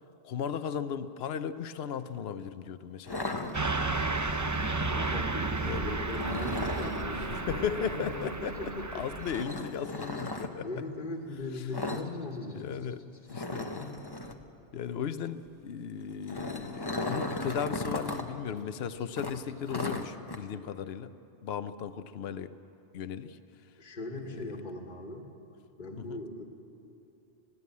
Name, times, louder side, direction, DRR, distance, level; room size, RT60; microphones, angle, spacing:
voice 1, 0.2-3.6 5.6-5.9 7.3-10.7 12.5-13.0 13.3-13.7 14.7-21.1 21.4-22.5 22.9-23.4 24.2-24.6 26.0-26.2, left 7 dB, 65° left, 12 dB, 0.9 m, -36 dB
sound 1, 3.1-4.1 6.1-7.0 9.2-10.5 11.7-12.1 12.3-12.5 12.8-12.9 13.3-14.4 16.0-18.2 18.6-18.7 19.2-20.4, left 2 dB, 20° left, 1.0 m, -36 dB
Car passing by / Truck, 3.5-9.4, right 3 dB, 20° right, 0.6 m, -32 dB
voice 2, 4.4-9.0 10.6-12.8 13.7-13.9 23.8-25.3 25.8-26.4, left 2 dB, 45° left, 1 dB, 1.7 m, -39 dB
20.5 x 16.0 x 8.5 m, 2.8 s
omnidirectional pair, 1.2 m